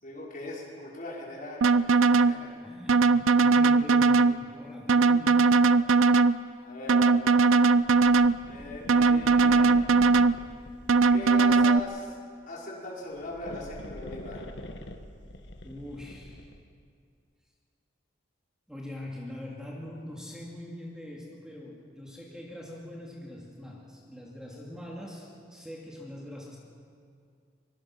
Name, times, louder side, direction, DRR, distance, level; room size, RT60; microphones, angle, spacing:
voice 1, 0.0-2.5 6.6-7.4 8.4-9.7 11.1-12.1 12.5-14.5, left 2 dB, 45° left, -3 dB, 5.1 m, -40 dB
sound 1, 1.6-2.4 2.9-4.4 4.9-6.4 6.9-8.4 8.9-10.4 10.9-11.8, right 4 dB, 85° right, 0.6 m, -20 dB
voice 2, 2.6-5.9 15.6-16.5 18.7-26.6, left 1 dB, 5° right, -3 dB, 2.5 m, -43 dB
sound 2, 7.7-12.1 13.0-16.7, left 1 dB, 60° left, 1.5 m, -45 dB
24.0 x 24.0 x 6.0 m, 2.3 s
head